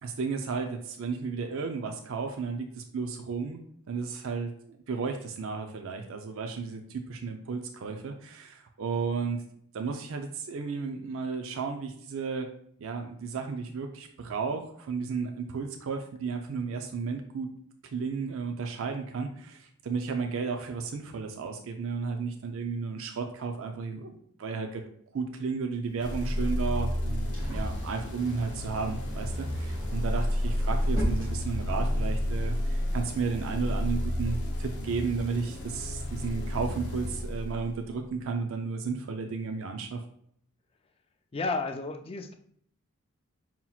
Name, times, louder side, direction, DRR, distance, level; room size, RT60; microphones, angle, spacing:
voice 1, 0.0-3.6 3.9-9.4 9.7-12.5 12.8-17.5 17.9-24.8 25.1-40.0, right 5 dB, 65° right, 5 dB, 0.4 m, -33 dB
sound 1, 25.8-32.1, equal, 20° right, 1.3 m, -37 dB
sound 2, 26.0-37.9, left 1 dB, 50° left, 0.7 m, -31 dB
voice 2, 41.3-42.3, left 3 dB, 25° left, 6 dB, 0.3 m, -32 dB
5.5 x 2.9 x 2.3 m, 0.65 s
head